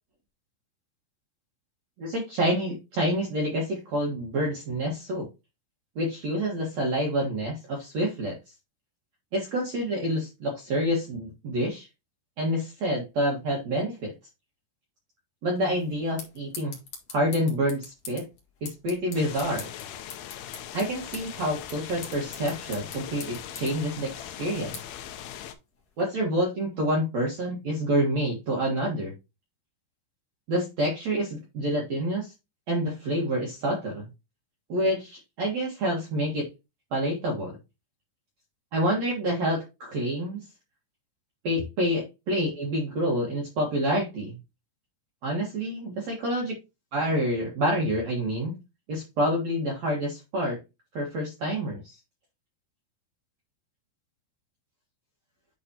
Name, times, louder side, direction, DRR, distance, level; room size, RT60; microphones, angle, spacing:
voice 1, 2.0-5.3 6.0-8.4 9.3-11.9 12.4-14.1 15.4-16.8 17.1-18.3 18.6-19.7 20.7-24.8 26.0-29.1 30.5-32.3 32.7-34.1 34.7-36.5 36.9-37.6 38.7-40.4 41.4-44.4 45.2-46.5 46.9-48.6 48.9-50.6 50.9-52.0, equal, 55° right, -2 dB, 2.2 m, -28 dB
sound 1, 15.6-26.0, left 5 dB, 45° left, 2.4 m, -45 dB
sound 2, 19.1-25.5, left 10 dB, 75° left, 2.5 m, -40 dB
10.5 x 4.2 x 2.9 m, 0.25 s
omnidirectional pair, 5.0 m